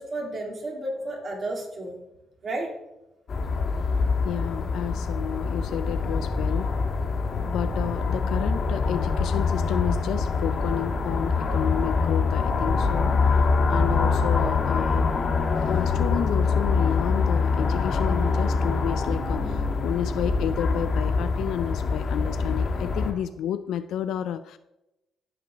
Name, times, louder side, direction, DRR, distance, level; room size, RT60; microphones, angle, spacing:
voice 1, 0.0-2.0 2.4-2.7, right 2 dB, 45° right, 0 dB, 2.4 m, -32 dB
sound 1, 3.3-23.1, left 4 dB, 50° left, 1.5 m, -24 dB
voice 2, 4.2-6.7 7.4-13.4 13.7-15.1 15.7-24.6, left 10 dB, 80° left, 11 dB, 0.3 m, -31 dB
15.0 x 5.0 x 3.4 m, 0.94 s
cardioid pair, 90°, 0 cm